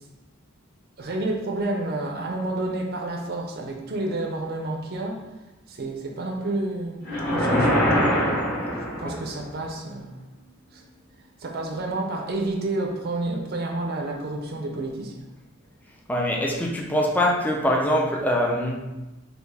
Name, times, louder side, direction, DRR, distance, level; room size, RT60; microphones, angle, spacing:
voice 1, 1.0-5.3 5.7-7.0 7.3-7.9 8.2-8.4 9.0-10.9 11.4-15.2, right 2 dB, 50° right, 0.5 m, -30 dB
sound 1, 7.0-9.4, equal, 55° left, 1.2 m, -23 dB
voice 2, 16.1-18.8, equal, 10° left, 0.4 m, -23 dB
3.3 x 2.3 x 3.5 m
head